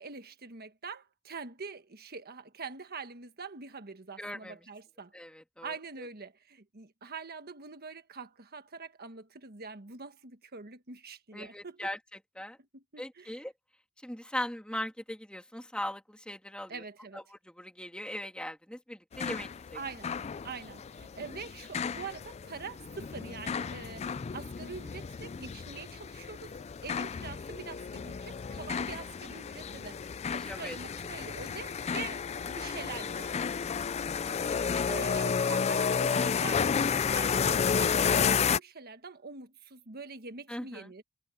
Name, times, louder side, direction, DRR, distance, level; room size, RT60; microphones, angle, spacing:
voice 1, 0.0-5.1 5.6-11.9 12.6-13.5 16.7-17.2 19.7-20.1 20.4-26.5 26.8-33.3 34.9-41.0, right 5 dB, 45° right, 1.5 m, -44 dB
voice 2, 4.2-4.6 5.1-5.7 11.3-12.0 12.4-12.6 13.0-13.5 14.0-16.8 17.1-17.2 17.5-19.8 30.3-30.8 40.5-40.9, left 1 dB, 5° left, 2.8 m, -39 dB
sound 1, 19.1-38.6, left 6 dB, 30° left, 0.3 m, -32 dB
head